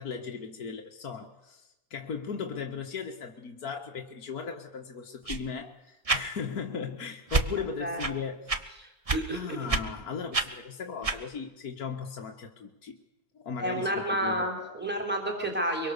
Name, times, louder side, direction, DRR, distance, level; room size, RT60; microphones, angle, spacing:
voice 1, 0.0-8.6 9.3-13.0 13.3-14.8, left 6 dB, 70° left, 2 dB, 2.2 m, -37 dB
sound 1, 5.3-5.4 6.0-6.2 7.3-7.5 8.0-8.1 8.5-8.6 9.1-9.2 9.7-9.8 10.3-10.5 11.0-11.2, right 3 dB, 25° right, 1.1 m, -27 dB
voice 2, 7.6-8.1 8.8-9.8 13.6-15.9, right 1 dB, 5° right, 2 dB, 4.1 m, -31 dB
24.0 x 23.5 x 6.8 m, 0.93 s
omnidirectional pair, 1.6 m